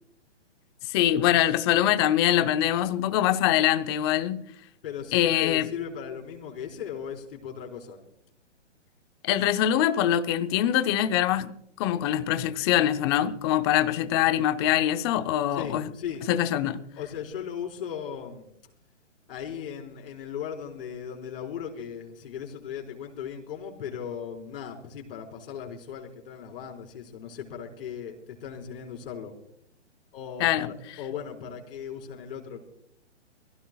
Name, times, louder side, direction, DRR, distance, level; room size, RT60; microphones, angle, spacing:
voice 1, 0.9-4.5 5.1-5.7 9.2-15.9 16.3-16.8 30.4-30.7, left 12 dB, 20° left, 0.7 m, -24 dB
voice 2, 4.8-8.0 15.5-16.2 17.0-18.5 19.3-28.2 28.4-29.3 30.1-32.6, left 8 dB, 50° left, 4.8 m, -37 dB
23.5 x 16.0 x 2.3 m
hypercardioid pair, 145°, 36 cm